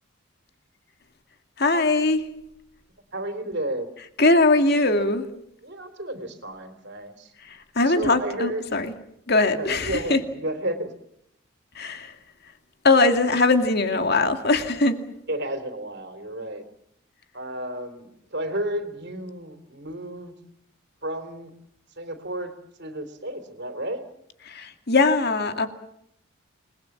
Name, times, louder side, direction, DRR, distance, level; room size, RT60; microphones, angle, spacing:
voice 1, 1.6-2.3 4.2-5.3 7.8-8.9 9.3-10.2 11.8-12.1 12.8-15.0 24.5-25.7, left 3 dB, 50° left, 7 dB, 2.3 m, -21 dB
voice 2, 3.1-3.9 5.6-7.3 7.9-8.6 9.6-10.9 15.3-16.6 17.3-20.3 21.0-21.5 22.0-22.5 22.8-24.0, right 1 dB, 50° right, 8 dB, 3.4 m, -32 dB
29.0 x 20.5 x 7.3 m, 0.74 s
head